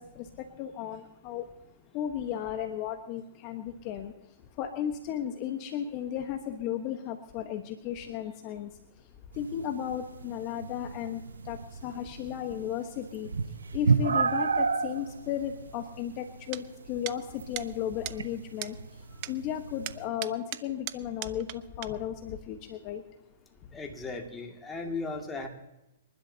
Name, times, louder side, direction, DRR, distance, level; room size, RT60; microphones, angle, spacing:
voice 1, 0.0-1.5 1.9-4.1 4.6-8.7 9.3-13.3 13.7-18.8 19.1-23.0, left 9 dB, 40° left, 6 dB, 1.2 m, -35 dB
sound 1, 9.3-20.1, right 5 dB, 85° right, 0.9 m, -33 dB
sound 2, 16.5-16.6 17.1-17.2 17.6-17.7 18.1-18.2 18.6-18.7 19.2-19.3 19.9-21.6 21.8-21.9, right 18 dB, 45° right, 0.6 m, -37 dB
voice 2, 23.7-25.5, left 3 dB, 10° left, 1 dB, 2.3 m, -36 dB
27.0 x 11.5 x 2.8 m, 0.93 s
hypercardioid pair, 125°, 0 cm